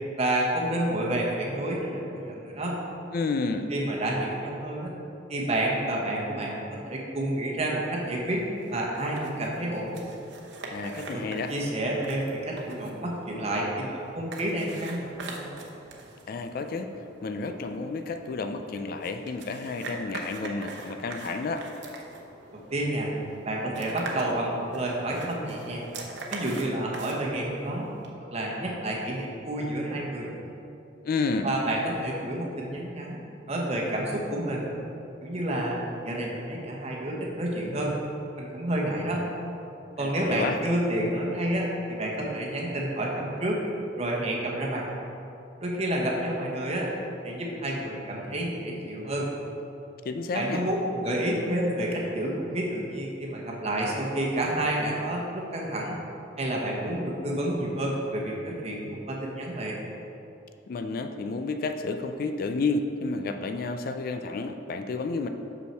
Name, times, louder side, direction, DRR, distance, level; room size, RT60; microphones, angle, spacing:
voice 1, 0.2-2.8 3.7-4.9 5.3-8.4 8.7-10.0 10.8-15.5 22.5-23.1 23.4-25.9 26.3-27.9 28.3-30.3 31.4-33.2 33.5-34.7 35.2-35.8 36.0-38.0 38.3-39.2 40.0-43.6 44.0-44.8 45.6-46.9 47.2-49.3 50.3-56.0 56.4-59.8, right 1 dB, 35° right, -2 dB, 1.0 m, -29 dB
voice 2, 3.1-3.7 10.7-11.5 16.3-16.9 17.2-21.7 31.0-31.5 40.0-40.6 50.1-50.6 60.7-65.3, left 3 dB, 50° left, 7 dB, 0.3 m, -31 dB
sound 1, 8.2-28.1, right 3 dB, 65° right, 0.9 m, -43 dB
6.3 x 5.7 x 4.4 m, 2.8 s
head